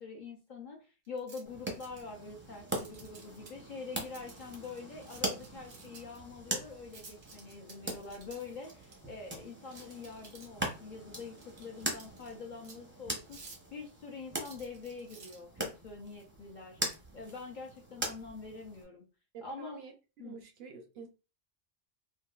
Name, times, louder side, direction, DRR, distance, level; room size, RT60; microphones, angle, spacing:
voice 1, 0.0-13.5 13.7-16.8 17.1-19.0 19.4-19.8 20.2-20.4, left 4 dB, 55° left, 0.6 m, -45 dB
sound 1, 1.1-1.4 1.8-2.2 2.7-3.5 4.1-6.2 6.9-8.9 9.7-10.7 11.4-12.3 12.6-12.8 13.2-13.7 14.4-15.4, right 4 dB, 90° right, 1.3 m, -53 dB
sound 2, 1.4-18.8, right 1 dB, 15° right, 0.5 m, -42 dB
voice 2, 19.3-21.1, right 5 dB, 65° right, 0.7 m, -48 dB
3.6 x 2.4 x 2.3 m
omnidirectional pair, 1.2 m